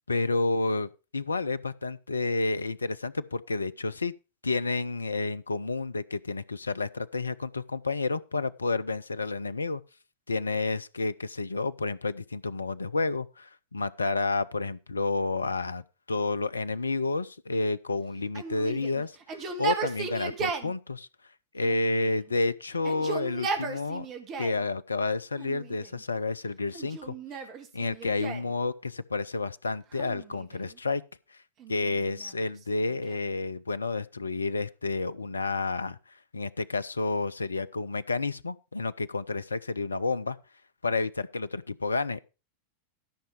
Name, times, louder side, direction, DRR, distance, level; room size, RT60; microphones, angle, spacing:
voice 1, 0.1-4.1 4.4-9.8 10.3-21.1 21.5-24.1 24.4-27.1 27.7-31.0 31.7-36.0 36.3-40.4 40.8-42.2, left 3 dB, 75° left, 0.5 m, -30 dB
Yell, 18.3-20.7 21.6-22.4 22.7-24.6 25.4-26.0 26.7-28.5 29.9-30.8 31.6-33.3, right 5 dB, 35° right, 1.9 m, -36 dB
13.0 x 5.7 x 5.0 m
figure-of-eight pair, 90°, 0 cm